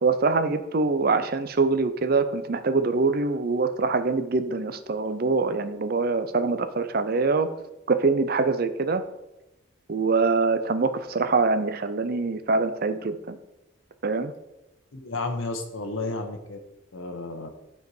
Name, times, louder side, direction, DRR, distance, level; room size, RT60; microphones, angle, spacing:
voice 1, 0.0-7.5 7.9-9.0 9.9-13.4 14.0-14.3, right 4 dB, 50° right, 11 dB, 0.5 m, -24 dB
voice 2, 14.9-16.6 16.9-17.5, left 2 dB, 80° left, 4 dB, 1.0 m, -32 dB
11.0 x 4.5 x 4.8 m, 0.95 s
head